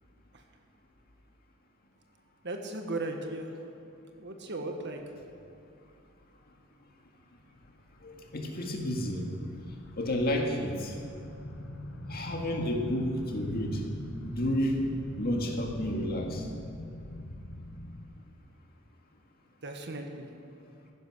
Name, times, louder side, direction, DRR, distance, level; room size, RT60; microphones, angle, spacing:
voice 1, 2.4-3.6 4.2-5.0 19.6-20.3, right 2 dB, 60° right, 4 dB, 1.5 m, -36 dB
sound 1, 7.2-18.1, left 1 dB, 65° left, 1.2 m, -43 dB
voice 2, 8.0-9.3 10.0-11.0 12.1-13.8 14.2-14.9 15.2-16.5, left 1 dB, 50° left, 2 dB, 1.9 m, -31 dB
15.0 x 10.5 x 6.3 m, 2.5 s
head